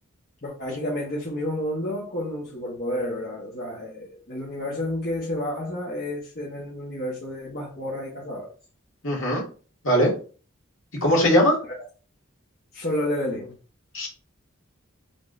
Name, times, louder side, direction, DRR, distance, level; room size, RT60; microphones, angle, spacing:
voice 1, 0.4-8.5 12.7-13.5, left 1 dB, 45° left, 1.3 m, -30 dB
voice 2, 9.0-9.4 9.8-10.1 11.0-11.6 13.9-14.1, equal, 65° left, 2.2 m, -19 dB
5.3 x 3.6 x 2.6 m
head